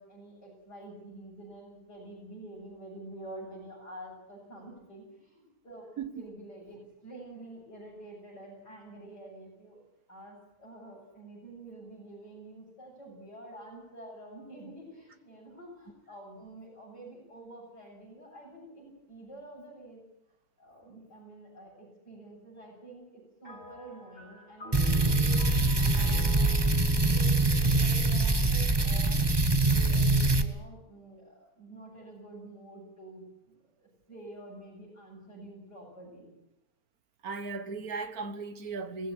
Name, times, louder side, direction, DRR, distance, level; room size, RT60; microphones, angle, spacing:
voice 1, 0.0-9.8 10.1-20.0 20.6-29.3 29.6-36.3, right 2 dB, 50° left, 8.3 m, -48 dB
sound 1, 23.4-29.0, left 3 dB, 25° left, 7.7 m, -48 dB
sound 2, 24.7-30.5, right 2 dB, 15° right, 0.8 m, -24 dB
voice 2, 37.2-39.1, right 4 dB, 50° right, 1.7 m, -36 dB
18.5 x 16.0 x 9.9 m
omnidirectional pair, 2.3 m